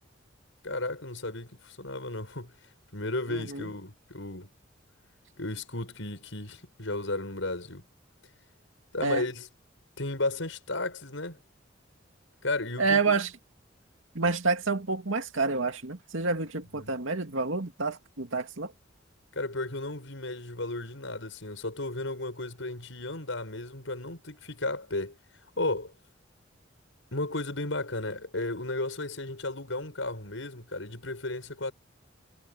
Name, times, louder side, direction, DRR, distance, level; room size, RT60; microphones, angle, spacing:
voice 1, 0.6-2.5 2.9-4.5 5.4-7.8 8.9-9.5 10.0-11.4 12.4-13.2 14.2-14.3 16.7-16.9 19.3-25.2 25.6-25.9 27.1-31.7, left 2 dB, 75° left, 6.2 m, -34 dB
voice 2, 3.3-3.7 9.0-9.2 12.8-13.3 14.1-18.7, right 4 dB, 85° right, 2.3 m, -28 dB
head